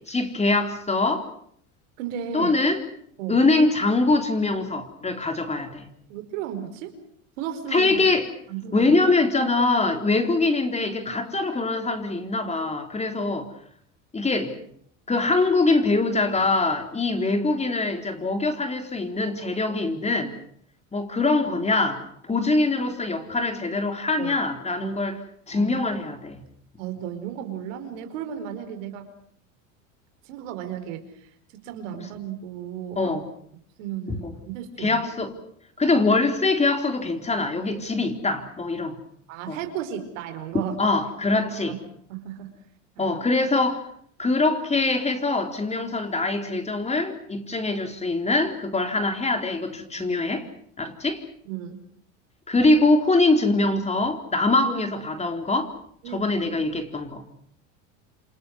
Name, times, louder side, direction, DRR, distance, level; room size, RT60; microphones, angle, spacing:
voice 1, 0.1-1.3 2.3-2.8 3.3-5.9 7.7-8.2 8.7-13.5 14.1-14.6 15.1-20.4 20.9-25.2 25.5-26.4 33.0-33.3 34.1-34.3 34.8-35.4 35.8-39.0 39.5-39.6 40.8-41.7 43.0-43.9 44.2-50.5 50.8-51.2 52.5-55.7 56.1-57.2, left 3 dB, 15° left, 6 dB, 3.9 m, -23 dB
voice 2, 2.0-2.6 3.2-3.4 6.1-7.0 7.4-8.1 8.5-8.9 24.2-24.4 25.5-25.8 26.8-29.1 30.2-33.2 33.8-35.0 39.3-40.8 41.5-41.8 42.1-42.6 42.9-43.2 49.9-50.1 51.4-51.8 56.0-56.2, right 9 dB, 75° right, 7 dB, 4.8 m, -34 dB
28.5 x 26.5 x 6.3 m, 0.65 s
supercardioid pair, 100°, 38 cm